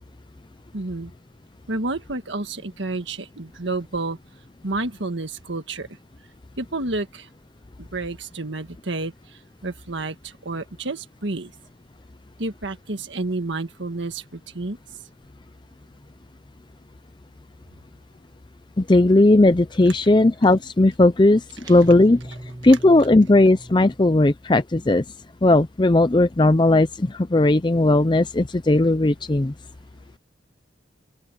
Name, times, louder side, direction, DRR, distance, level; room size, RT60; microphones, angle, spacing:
voice 1, 0.7-1.1 1.7-4.2 4.6-5.9 6.6-7.3 7.8-9.1 9.6-11.5 12.4-14.8, right 2 dB, 70° right, 1.7 m, -30 dB
voice 2, 18.8-22.4 22.6-25.0 25.4-29.5, left 2 dB, 25° left, 0.5 m, -17 dB
sound 1, 21.6-24.2, right 1 dB, 20° right, 1.7 m, -40 dB
open air
head